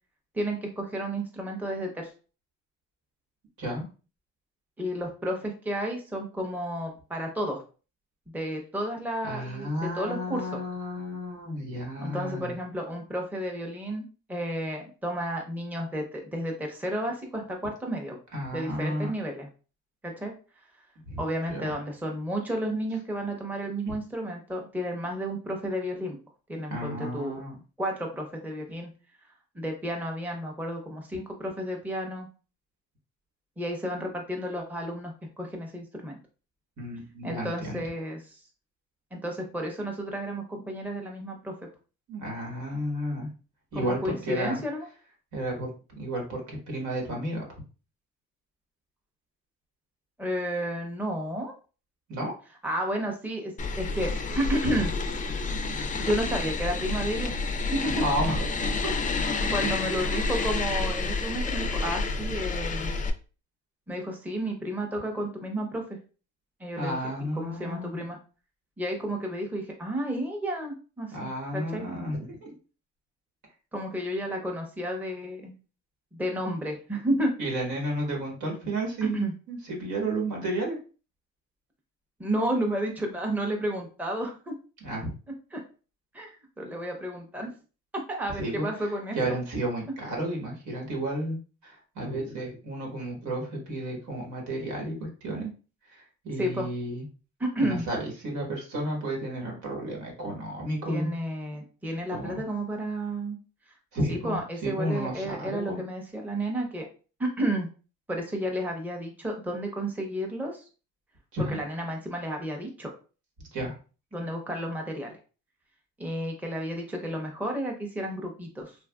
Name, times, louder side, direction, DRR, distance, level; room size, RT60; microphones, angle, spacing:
voice 1, 0.3-2.1 4.8-7.6 8.3-10.5 12.0-18.2 18.5-19.5 20.0-20.3 21.2-26.2 26.5-27.4 27.8-28.9 29.5-32.3 33.6-36.2 37.2-38.4 39.1-41.5 43.7-44.9 50.2-51.5 52.6-54.9 56.0-57.4 57.7-58.0 59.4-62.9 63.9-66.0 66.6-67.0 67.4-68.2 68.8-71.9 73.7-75.5 76.1-77.3 79.0-79.3 82.2-84.5 85.5-85.6 86.1-87.5 88.1-89.2 96.4-96.7 97.4-97.9 100.9-103.4 104.1-106.8 107.2-107.7 108.1-110.6 111.5-112.9 114.1-115.2 116.0-118.8, right 1 dB, 5° right, 2 dB, 0.7 m, -32 dB
voice 2, 9.2-12.5 18.3-19.1 21.1-21.2 21.5-21.7 26.7-27.6 36.8-37.8 42.1-43.3 43.7-44.6 45.3-45.7 45.9-47.4 52.1-52.3 57.8-58.9 59.8-59.9 66.8-68.0 71.1-72.5 77.4-80.8 84.8-85.1 88.3-88.7 89.1-91.4 91.6-95.5 95.9-97.0 97.6-101.1 102.1-102.4 103.9-105.8 111.3-111.6 113.5-113.7, right 1 dB, 80° right, 0 dB, 1.4 m, -32 dB
sound 1, 53.6-63.1, left 3 dB, 25° left, 0.4 m, -29 dB
3.3 x 2.4 x 2.2 m, 0.35 s
cardioid pair, 90°, 30 cm